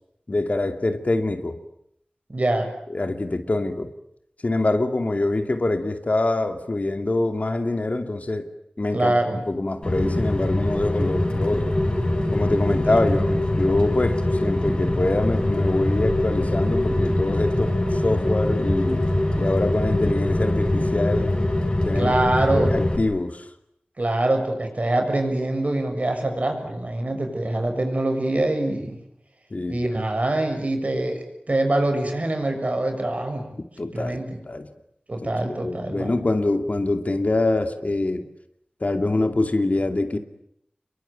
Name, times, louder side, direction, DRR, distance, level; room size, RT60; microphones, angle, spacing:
voice 1, 0.3-1.6 2.9-3.9 4.4-8.5 8.8-11.8 12.3-19.1 19.3-21.3 21.8-22.1 22.5-23.5 29.5-29.9 33.8-34.2 34.5-34.7 35.5-38.3 38.8-40.2, left 2 dB, 55° left, 7 dB, 2.6 m, -25 dB
voice 2, 2.3-2.7 8.9-9.4 12.7-13.2 22.0-22.7 24.0-29.0 29.7-33.5 33.9-34.4 35.1-36.2, right 1 dB, 55° right, 4 dB, 7.2 m, -24 dB
Rain, 9.8-23.0, left 1 dB, 35° left, 5.3 m, -23 dB
28.5 x 23.0 x 9.1 m, 0.73 s
wide cardioid pair, 55°, 3 cm